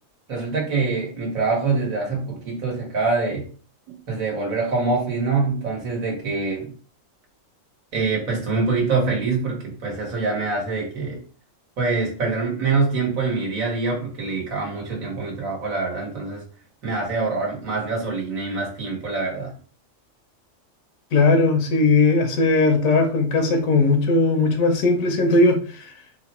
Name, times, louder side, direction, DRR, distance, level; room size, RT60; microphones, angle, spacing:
voice 1, 0.3-3.5 4.1-6.7 7.9-11.2 11.8-16.4 16.8-19.5, right 4 dB, 85° right, 1.7 m, -25 dB
voice 2, 21.1-25.6, left 3 dB, 90° left, 1.2 m, -18 dB
3.8 x 2.1 x 4.2 m
omnidirectional pair, 1.4 m